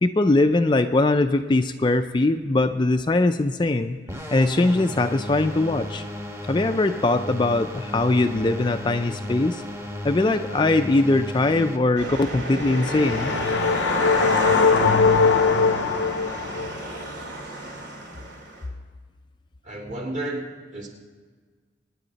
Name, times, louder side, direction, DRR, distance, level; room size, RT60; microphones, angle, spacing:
voice 1, 0.0-4.0 4.3-6.0 6.5-9.6 10.0-13.3, left 2 dB, 25° left, 7 dB, 0.4 m, -21 dB
sound 1, 4.1-11.8, left 1 dB, 15° right, 1.1 m, -34 dB
sound 2, 12.0-18.6, right 1 dB, 65° right, 2.8 m, -30 dB
sound 3, 12.5-16.8, left 5 dB, 85° left, 0.6 m, -21 dB
voice 2, 19.6-20.4 20.7-20.9, right 1 dB, 40° right, 0 dB, 2.8 m, -31 dB
25.0 x 9.9 x 4.0 m, 1.5 s
head